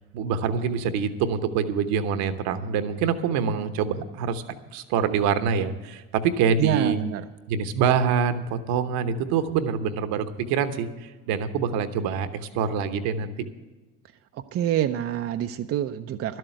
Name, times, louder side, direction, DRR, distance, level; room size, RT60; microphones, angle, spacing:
voice 1, 0.1-4.4 4.7-7.0 7.5-13.3, right 7 dB, 60° right, 10 dB, 1.1 m, -25 dB
voice 2, 6.6-7.2 14.5-16.4, right 11 dB, 40° right, 8 dB, 0.5 m, -26 dB
12.0 x 7.7 x 8.0 m, 1.2 s
hypercardioid pair, 70°, 39 cm